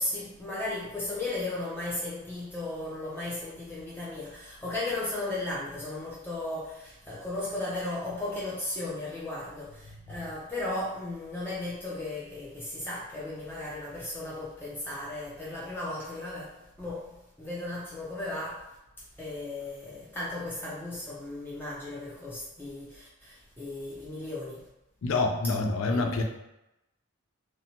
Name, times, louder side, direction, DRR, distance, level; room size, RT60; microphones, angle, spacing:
voice 1, 0.0-16.5 16.8-17.1 17.4-18.7 19.2-24.6 25.8-26.2, left 2 dB, 10° left, -7 dB, 0.4 m, -35 dB
voice 2, 25.0-26.2, left 3 dB, 75° left, 4 dB, 0.4 m, -27 dB
2.7 x 2.1 x 2.8 m, 0.91 s
head